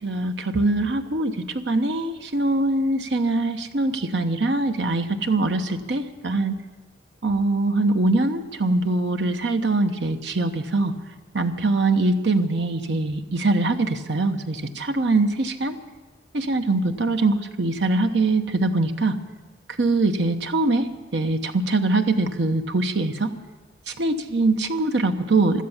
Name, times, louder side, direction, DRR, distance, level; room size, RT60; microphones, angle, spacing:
voice 1, 0.0-6.6 7.2-10.9 11.3-15.7 16.3-19.2 19.8-23.3 23.9-25.6, right 2 dB, 85° right, 7 dB, 1.0 m, -23 dB
16.0 x 12.5 x 7.2 m, 1.3 s
head